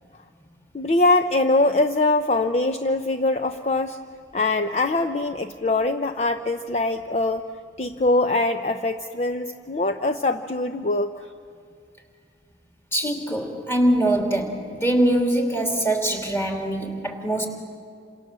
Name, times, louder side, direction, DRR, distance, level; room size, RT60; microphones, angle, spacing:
voice 1, 0.7-4.0 4.3-7.5 7.8-11.1, left 2 dB, 35° left, 7 dB, 0.6 m, -22 dB
voice 2, 12.9-17.5, right 1 dB, 15° left, 2 dB, 2.9 m, -23 dB
29.0 x 27.0 x 7.5 m, 2.3 s
head